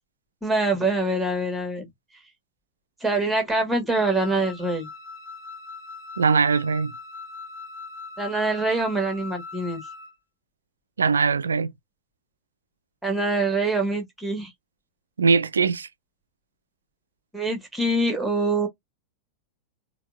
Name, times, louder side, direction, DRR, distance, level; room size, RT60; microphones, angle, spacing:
voice 1, 0.4-1.9 3.0-4.9 8.2-9.8 13.0-14.5 17.3-18.7, right 2 dB, 5° right, 1.4 m, -24 dB
Wind instrument woodwind instrument, 3.9-10.1, left 4 dB, 45° left, 0.7 m, -40 dB
voice 2, 6.2-6.9 11.0-11.7 15.2-15.9, right 5 dB, 70° right, 0.4 m, -21 dB
4.2 x 2.3 x 2.4 m
figure-of-eight pair, 90°, 0 cm